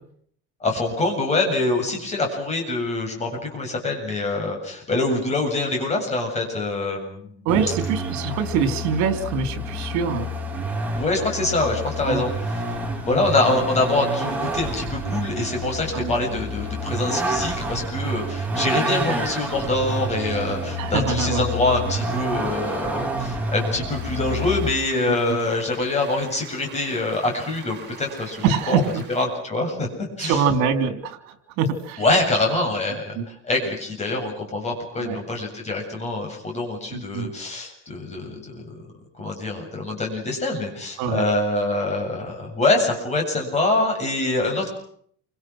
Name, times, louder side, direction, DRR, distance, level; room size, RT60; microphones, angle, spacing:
voice 1, 0.6-7.5 10.9-12.3 13.0-28.8 29.1-29.9 30.2-30.4 32.0-38.9 39.2-44.7, left 2 dB, 20° left, 2 dB, 7.9 m, -25 dB
Vehicle, 7.5-24.7, right 1 dB, 5° right, 3.7 m, -28 dB
voice 2, 7.5-10.3 12.1-12.2 13.1-13.2 15.9-16.1 20.8-21.5 28.4-29.0 30.2-32.0 33.2-33.3 35.0-35.2 36.9-37.3 41.0-41.2, right 6 dB, 65° right, 9 dB, 3.6 m, -24 dB
sound 1, 23.9-29.3, right 6 dB, 35° right, 7.3 m, -43 dB
29.0 x 26.0 x 6.3 m, 0.62 s
cardioid pair, 170°, 31 cm